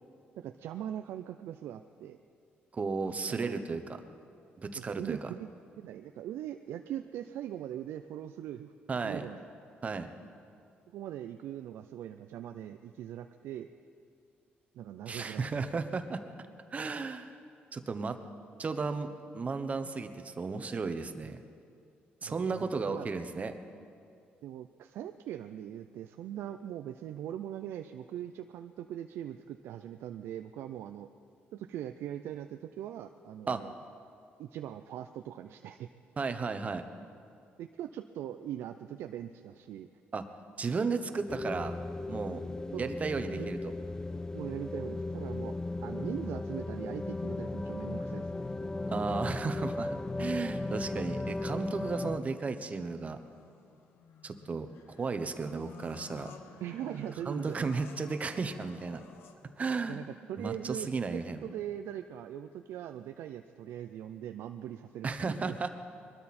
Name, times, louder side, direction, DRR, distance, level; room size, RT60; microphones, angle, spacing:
voice 1, 0.4-2.2 3.3-3.7 4.7-5.5 5.8-8.7 9.0-9.5 10.9-13.7 14.7-15.5 22.3-23.1 24.4-31.1 31.5-33.7 34.4-35.9 37.6-39.9 42.7-42.9 43.3-43.5 44.3-45.5 45.8-48.5 56.6-57.6 59.9-65.7, right 11 dB, 85° right, 7 dB, 0.5 m, -41 dB
voice 2, 2.7-3.8 4.6-5.2 8.9-9.3 9.8-10.1 15.1-16.2 16.7-17.3 17.7-18.2 18.6-21.4 22.2-23.5 33.5-33.6 36.2-36.8 40.1-40.3 40.6-41.7 42.1-42.4 42.8-43.7 48.9-53.2 54.2-54.7 55.0-56.3 57.3-59.0 59.6-60.0 60.4-61.4 65.0-65.7, right 4 dB, 35° right, 9 dB, 1.0 m, -34 dB
sound 1, 41.3-52.2, left 2 dB, 15° left, 0.4 m, -36 dB
sound 2, 50.5-59.6, left 6 dB, 85° left, 1.2 m, -54 dB
22.0 x 12.5 x 4.3 m, 2.4 s
cardioid pair, 95°, 4 cm